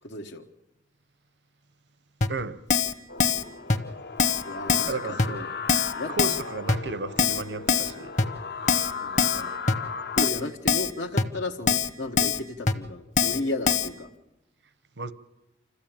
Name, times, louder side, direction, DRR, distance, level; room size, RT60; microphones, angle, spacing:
voice 1, 0.0-0.5 4.4-5.5 5.9-6.1 8.9-9.5 10.2-14.1, left 2 dB, 85° left, 1.2 m, -34 dB
Keyboard (musical), 2.2-2.3 2.7-2.9 3.2-3.4 3.7-3.8 4.2-4.4 4.7-4.9 5.2-5.3 5.7-5.9 6.2-6.4 6.7-6.8 7.2-7.4 7.7-7.9 8.2-8.3 8.7-8.9 9.2-9.4 9.7-9.8 10.2-10.4 10.7-10.9 11.2-11.3 11.7-11.9 12.2-12.4 12.7-12.8 13.2-13.4 13.7-13.9, left 5 dB, 40° left, 1.0 m, -22 dB
voice 2, 2.3-2.6 4.9-5.4 6.2-8.1 15.0-15.1, right 3 dB, 75° right, 0.9 m, -33 dB
sound 1, 3.1-10.3, left 5 dB, 60° left, 0.7 m, -37 dB
26.0 x 14.5 x 8.8 m
head